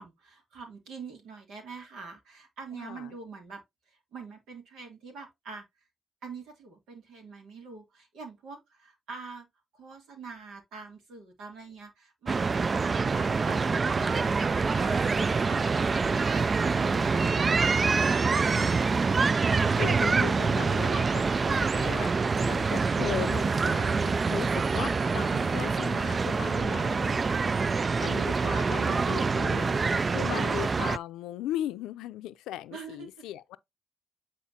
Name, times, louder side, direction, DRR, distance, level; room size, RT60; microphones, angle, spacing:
voice 1, 0.0-5.6 6.2-9.5 9.7-15.1 15.4-19.0 30.3-30.6 32.7-33.1, right 4 dB, 85° right, 2.8 m, -45 dB
voice 2, 2.7-3.1 16.6-17.4 19.8-27.2 28.0-33.6, left 13 dB, 85° left, 0.5 m, -38 dB
sound 1, 12.3-31.0, right 4 dB, 45° right, 0.3 m, -26 dB
8.9 x 4.2 x 2.8 m
supercardioid pair, 45°, 0 cm